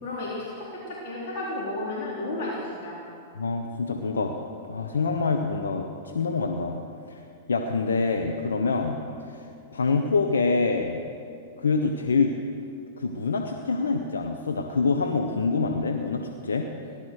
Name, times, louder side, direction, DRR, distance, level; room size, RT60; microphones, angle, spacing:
voice 1, 0.0-3.0, left 2 dB, 60° left, -5 dB, 4.0 m, -33 dB
voice 2, 3.4-4.3 4.7-6.8 7.5-9.0 9.7-11.0 11.6-12.3 13.0-16.7, left 4 dB, 90° left, 3 dB, 1.2 m, -25 dB
18.0 x 12.0 x 6.6 m, 2.4 s
hypercardioid pair, 115°, 0 cm